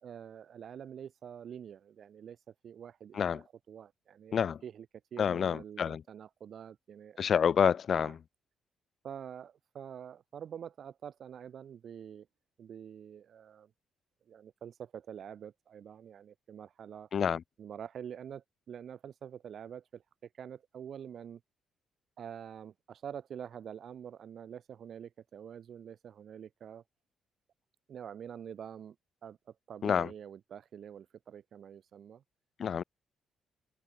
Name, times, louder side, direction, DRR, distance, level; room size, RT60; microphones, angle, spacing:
voice 1, 0.0-4.9 5.1-7.3 7.9-8.2 9.0-12.3 12.6-13.7 14.3-17.1 17.6-21.4 22.2-26.8 27.9-28.9 29.2-32.2, right 8 dB, 60° right, 1.7 m, -46 dB
voice 2, 5.2-6.0 7.2-8.1 17.1-17.4 29.8-30.1 32.6-32.8, left 7 dB, 55° left, 0.5 m, -28 dB
cardioid pair, 90°, 0 cm